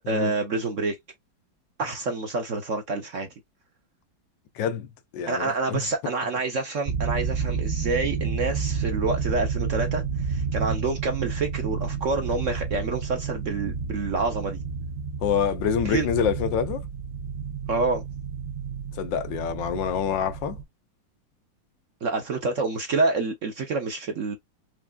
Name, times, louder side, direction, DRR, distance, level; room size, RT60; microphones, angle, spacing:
voice 1, 0.1-1.0 1.8-3.3 5.3-14.6 15.8-16.1 17.7-18.0 22.0-24.4, right 3 dB, 60° right, 0.9 m, -27 dB
voice 2, 4.6-4.9 5.1-5.8 15.2-16.8 18.9-20.6, left 8 dB, 85° left, 1.4 m, -26 dB
sound 1, 6.9-20.6, right 5 dB, 85° right, 0.4 m, -30 dB
4.8 x 3.3 x 2.3 m
omnidirectional pair, 2.0 m